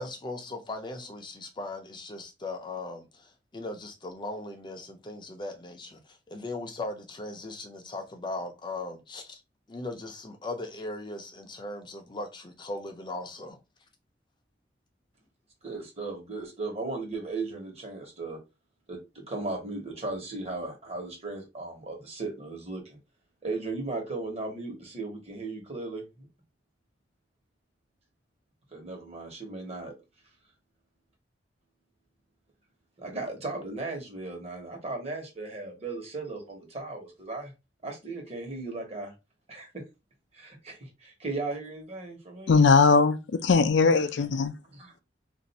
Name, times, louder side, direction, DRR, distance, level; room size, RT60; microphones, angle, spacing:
voice 1, 0.0-9.4 9.7-13.6, left 2 dB, 25° left, 0.5 m, -38 dB
voice 2, 15.6-18.4 18.9-23.0 23.4-26.3 28.7-29.9 33.0-37.5 37.8-39.1 39.5-39.8 40.3-42.7 43.9-44.2 44.7-45.0, right 3 dB, 35° right, 1.2 m, -36 dB
voice 3, 42.5-44.5, left 4 dB, 75° left, 0.4 m, -20 dB
2.6 x 2.4 x 4.0 m
head